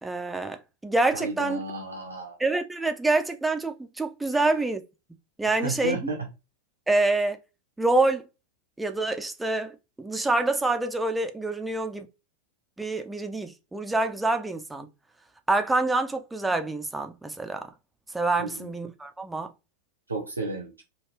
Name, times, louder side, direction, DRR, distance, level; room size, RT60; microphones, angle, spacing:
voice 1, 0.0-1.6 2.4-4.8 5.4-6.0 6.9-7.4 7.8-8.2 8.8-12.1 12.8-14.9 15.5-17.7 18.1-19.5, right 2 dB, 5° right, 0.4 m, -26 dB
voice 2, 1.1-2.4 5.4-6.3 18.4-18.7 20.1-20.8, right 3 dB, 75° right, 0.6 m, -33 dB
3.1 x 2.4 x 2.9 m
figure-of-eight pair, 90°, 0 cm